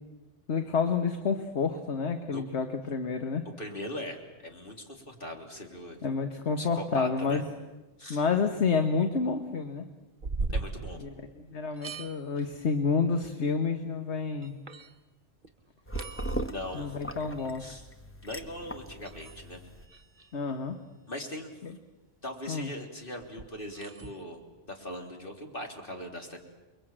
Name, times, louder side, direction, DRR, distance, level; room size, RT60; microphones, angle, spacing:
voice 1, 0.5-3.4 6.0-7.4 8.1-9.8 11.0-14.6 16.7-17.7 20.3-20.8 21.6-21.7 22.5-22.7, left 5 dB, 65° left, 6 dB, 1.6 m, -29 dB
voice 2, 3.5-6.0 6.6-7.4 8.0-8.2 10.5-11.0 12.4-12.5 16.4-17.0 17.6-17.9 18.2-19.6 21.1-21.5 22.2-24.4 24.7-26.4, left 1 dB, 45° left, 2 dB, 3.6 m, -40 dB
sound 1, 10.2-11.5 11.7-12.6 13.2-13.3 14.1-14.2 14.4-14.9 15.4-15.5 15.8-16.8 17.4-17.7 19.0-20.8 23.2-24.2, right 3 dB, 40° right, 1.4 m, -39 dB
sound 2, 15.9-19.9, right 1 dB, 10° left, 1.1 m, -39 dB
29.0 x 22.0 x 8.9 m, 1.1 s
omnidirectional pair, 1.2 m